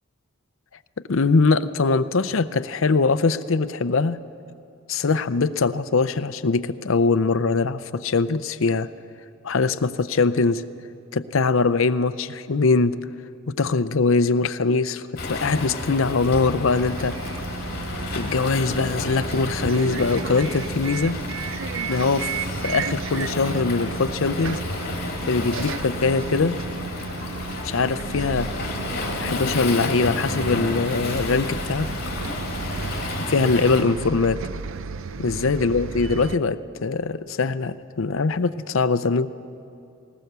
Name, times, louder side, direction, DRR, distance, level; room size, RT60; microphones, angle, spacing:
voice 1, 1.1-4.2 4.9-8.9 9.4-10.6 11.1-13.0 13.6-17.2 18.1-21.2 21.9-24.6 25.3-26.6 27.6-28.5 29.2-31.9 33.3-34.4 35.2-39.3, left 4 dB, 70° left, 13 dB, 0.6 m, -22 dB
Waves surf, 15.2-33.8, left 2 dB, 45° left, 3.0 m, -31 dB
Bus, 16.7-36.4, right 5 dB, 65° right, 0.5 m, -34 dB
20.0 x 20.0 x 6.8 m, 2.7 s
head